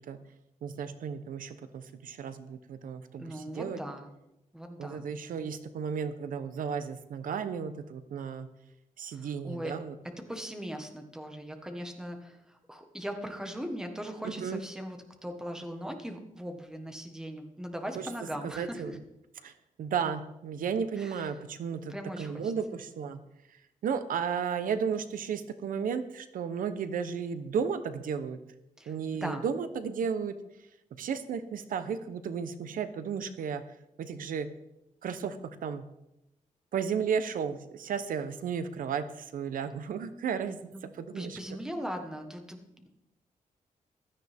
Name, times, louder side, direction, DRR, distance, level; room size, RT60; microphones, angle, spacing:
voice 1, 0.6-3.8 4.8-8.5 9.0-9.9 14.2-14.6 18.0-18.1 18.4-18.9 19.4-19.5 19.8-23.2 23.5-28.4 28.9-30.3 30.9-33.6 34.0-34.5 35.0-35.8 36.7-40.7 41.0-41.4, right 6 dB, 85° right, 11 dB, 0.9 m, -34 dB
voice 2, 3.1-4.1 4.5-5.1 9.1-9.7 10.3-19.0 21.0-21.3 21.9-22.5 28.8-29.4 40.7-40.8 41.1-42.9, equal, 5° right, 5 dB, 1.4 m, -39 dB
15.5 x 13.0 x 3.6 m, 0.89 s
wide cardioid pair, 165°, 14 cm